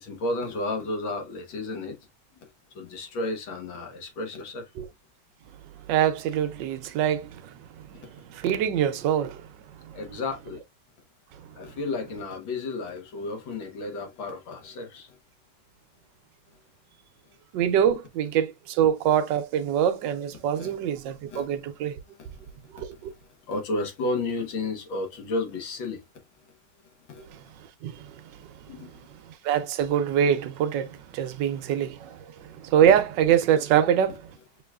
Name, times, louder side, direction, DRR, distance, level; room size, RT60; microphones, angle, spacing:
voice 1, 0.0-1.9 2.8-4.6 9.9-10.6 11.6-15.1 20.5-20.7 21.3-21.5 23.5-26.0 27.1-27.2 28.7-28.9, left 2 dB, 70° left, 2.0 m, -32 dB
voice 2, 5.9-9.5 9.8-10.2 17.5-22.0 22.7-23.1 27.2-27.4 27.8-28.5 28.8-28.9 29.3-34.3, right 9 dB, 70° right, 1.2 m, -25 dB
6.0 x 3.6 x 2.3 m
omnidirectional pair, 2.2 m